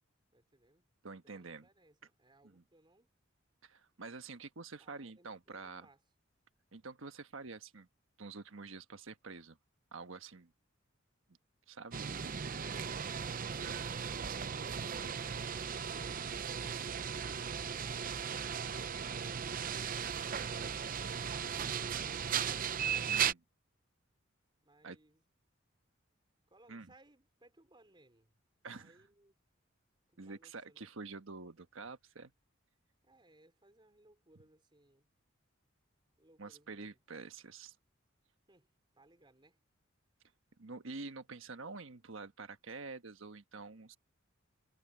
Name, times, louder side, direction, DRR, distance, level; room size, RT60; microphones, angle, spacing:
voice 1, 0.3-0.8 1.2-3.1 4.8-6.0 24.6-25.2 26.5-28.4 28.7-29.4 30.1-30.9 33.0-35.1 36.2-37.0 38.5-38.7 38.9-39.6, right 2 dB, 25° right, 3.8 m, -66 dB
voice 2, 1.0-1.7 2.4-2.6 3.6-5.9 6.7-7.9 8.2-9.6 9.9-10.5 11.7-12.0 23.1-23.4 24.8-25.0 26.7-26.9 28.6-29.0 30.2-32.3 36.4-37.7 40.6-44.0, right 4 dB, 75° right, 1.3 m, -47 dB
sound 1, 11.9-23.3, right 7 dB, 45° right, 0.6 m, -37 dB
head